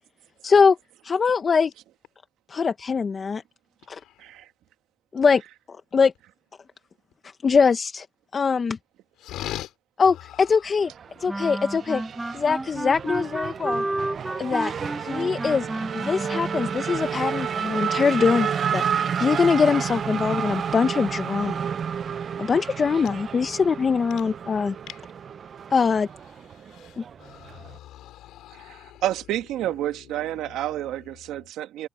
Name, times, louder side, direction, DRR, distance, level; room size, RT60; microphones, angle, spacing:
voice 1, 0.4-0.8 1.0-1.7 2.5-3.4 3.9-4.0 5.1-5.4 5.7-6.1 7.4-8.1 8.3-8.8 10.0-10.9 11.2-12.0 12.3-13.8 14.4-14.7 15.0-15.7 15.9-21.6 22.4-24.7 25.7-26.1 27.0-27.1, left 5 dB, 40° left, 1.1 m, -22 dB
voice 2, 3.8-4.4 9.2-10.8 24.2-24.3 24.9-25.1 26.1-29.1 29.6-31.4, left 14 dB, 90° left, 4.1 m, -42 dB
Race car auto racing / Accelerating revving vroom, 10.8-27.8, right 7 dB, 55° right, 0.7 m, -31 dB
sound 1, 11.3-16.9, right 2 dB, 15° right, 1.0 m, -31 dB
voice 3, 28.7-31.9, right 13 dB, 90° right, 1.5 m, -29 dB
cardioid pair, 90°, 0 cm